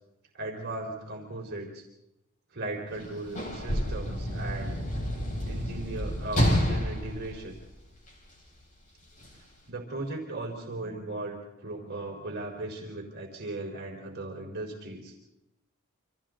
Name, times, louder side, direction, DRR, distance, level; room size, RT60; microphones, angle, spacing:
voice 1, 0.3-1.8 2.5-4.8 5.4-7.5 9.3-15.1, right 2 dB, 45° right, -1 dB, 4.2 m, -37 dB
Sliding door / Slam, 2.9-8.3 9.2-9.3, equal, 35° left, 5.6 m, -29 dB
29.0 x 26.5 x 3.9 m, 0.89 s
head